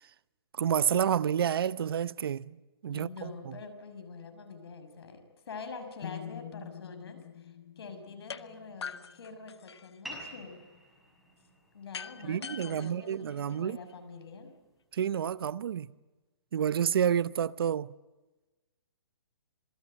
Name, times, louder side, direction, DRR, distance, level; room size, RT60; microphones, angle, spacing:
voice 1, 0.6-2.6 2.8-3.5 12.2-13.8 14.9-15.9 16.5-17.9, right 9 dB, 65° right, 0.9 m, -29 dB
voice 2, 2.9-10.6 11.7-14.5, left 4 dB, 70° left, 6.6 m, -46 dB
sound 1, 6.0-10.0, left 9 dB, 55° left, 1.4 m, -47 dB
sound 2, 8.3-8.4 8.8-10.0 11.9-13.9, left 6 dB, 85° left, 1.3 m, -43 dB
sound 3, 10.0-15.1, right 1 dB, ahead, 6.6 m, -51 dB
27.0 x 20.5 x 9.1 m
hypercardioid pair, 160°, 13 cm